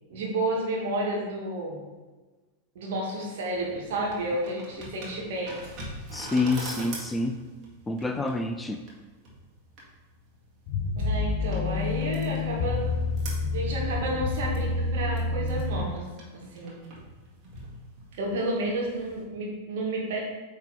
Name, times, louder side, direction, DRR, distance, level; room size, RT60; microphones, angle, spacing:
voice 1, 0.1-1.8 2.7-5.6 11.0-12.9 13.5-16.0 16.5-16.8 18.2-20.2, right 1 dB, 55° right, -3 dB, 2.1 m, -31 dB
sound 1, 3.5-19.2, right 2 dB, 35° right, 2.0 m, -45 dB
voice 2, 6.1-7.4 7.9-8.8, left 3 dB, 10° left, 6 dB, 0.4 m, -27 dB
sound 2, 10.7-15.9, left 4 dB, 50° left, 0.7 m, -28 dB
8.7 x 3.7 x 4.1 m, 1.3 s
figure-of-eight pair, 90°, 0 cm